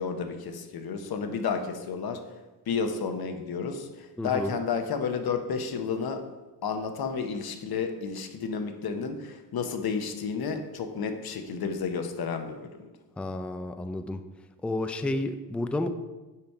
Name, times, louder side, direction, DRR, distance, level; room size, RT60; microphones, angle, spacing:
voice 1, 0.0-2.2 2.7-6.2 6.6-12.9, left 5 dB, 55° left, 6 dB, 0.9 m, -31 dB
voice 2, 4.2-4.5 13.2-14.2 14.6-15.9, left 2 dB, 5° left, 8 dB, 0.3 m, -31 dB
5.7 x 5.2 x 4.6 m, 1.1 s
cardioid pair, 85°, 43 cm